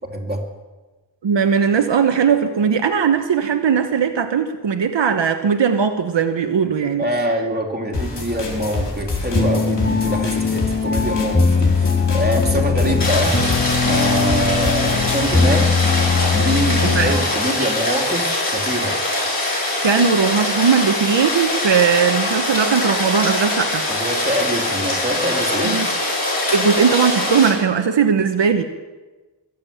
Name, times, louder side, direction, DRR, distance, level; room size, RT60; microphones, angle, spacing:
voice 1, 0.0-0.4 7.0-13.4 13.8-15.8 16.2-18.9 23.9-25.9, equal, 20° right, 1 dB, 2.9 m, -24 dB
voice 2, 1.2-7.1 16.8-17.1 19.8-23.8 25.6-25.9 26.5-28.6, right 6 dB, 80° right, 6 dB, 1.0 m, -18 dB
sound 1, 7.9-15.3, left 3 dB, 70° left, 3.2 m, -28 dB
sound 2, 9.3-17.4, left 4 dB, 30° left, 1.7 m, -20 dB
Rain, 13.0-27.5, left 2 dB, 50° left, 6.8 m, -22 dB
22.5 x 7.5 x 8.6 m, 1.2 s
wide cardioid pair, 80°, 43 cm